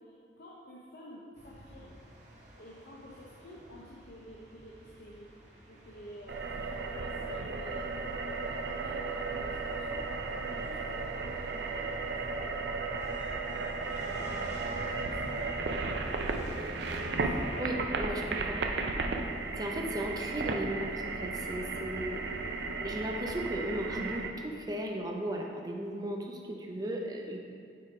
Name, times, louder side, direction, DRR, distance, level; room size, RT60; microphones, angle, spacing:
voice 1, 0.0-2.0 2.5-5.3 5.7-8.0 8.2-10.1 10.4-12.7 13.2-15.8 16.9-17.8, equal, 60° left, -5 dB, 0.7 m, -51 dB
sound 1, 1.3-17.6, right 1 dB, 40° right, 1.2 m, -48 dB
sound 2, 6.3-24.3, right 3 dB, 65° right, 0.5 m, -35 dB
voice 2, 17.6-18.6 19.5-22.2 22.8-27.4, right 1 dB, 20° right, 1 dB, 0.6 m, -36 dB
6.6 x 3.8 x 4.9 m, 2.4 s
head